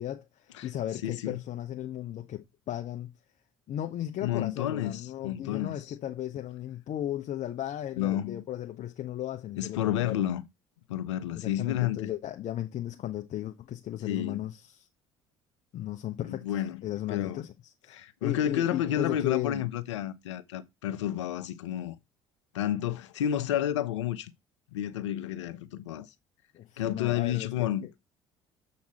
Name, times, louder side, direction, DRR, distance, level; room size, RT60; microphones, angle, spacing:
voice 1, 0.0-3.1 3.7-10.2 11.3-14.9 15.7-17.5 17.8-19.6 26.5-27.9, left 12 dB, 55° left, 1.0 m, -36 dB
voice 2, 1.0-1.4 4.2-5.8 8.0-8.4 9.6-10.4 10.9-12.1 14.1-14.4 16.3-17.4 17.9-22.0 22.5-24.3 24.7-26.1 26.8-27.9, left 11 dB, 85° left, 0.8 m, -30 dB
7.5 x 5.8 x 4.2 m
hypercardioid pair, 65°, 15 cm